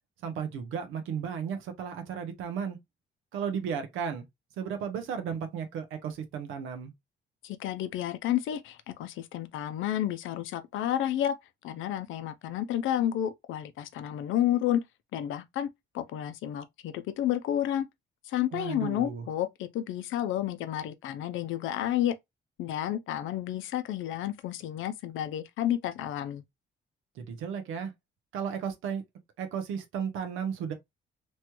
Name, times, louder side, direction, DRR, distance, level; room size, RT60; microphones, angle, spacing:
voice 1, 0.2-2.8 3.3-4.2 4.6-6.9 18.5-19.3 27.2-27.9 28.3-29.0 29.4-30.7, right 7 dB, 90° right, 0.8 m, -34 dB
voice 2, 7.4-11.4 11.6-14.8 15.1-15.7 15.9-17.9 18.3-22.1 22.6-26.4, left 11 dB, 80° left, 0.5 m, -31 dB
3.1 x 2.2 x 2.9 m
cardioid pair, 90°, 20 cm